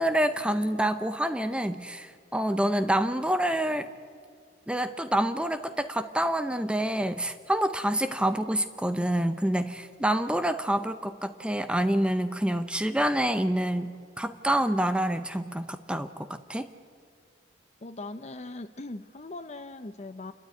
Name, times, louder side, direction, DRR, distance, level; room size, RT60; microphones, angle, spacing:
voice 1, 0.0-3.9 4.7-16.7, right 1 dB, 5° right, 10 dB, 0.6 m, -27 dB
voice 2, 17.8-20.3, left 2 dB, 40° left, 9 dB, 0.6 m, -40 dB
28.5 x 13.0 x 9.6 m, 2.1 s
head